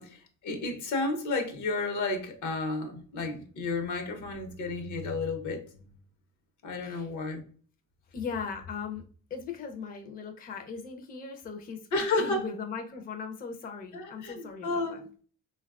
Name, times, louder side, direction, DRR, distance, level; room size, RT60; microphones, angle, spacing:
voice 1, 0.0-5.8 6.6-7.4 11.9-12.4 13.9-15.0, left 3 dB, 75° left, 5 dB, 0.8 m, -32 dB
voice 2, 8.1-9.0 9.3-15.1, left 5 dB, 30° left, 4 dB, 0.4 m, -38 dB
3.4 x 2.2 x 2.3 m, 0.42 s
cardioid pair, 90°, 30 cm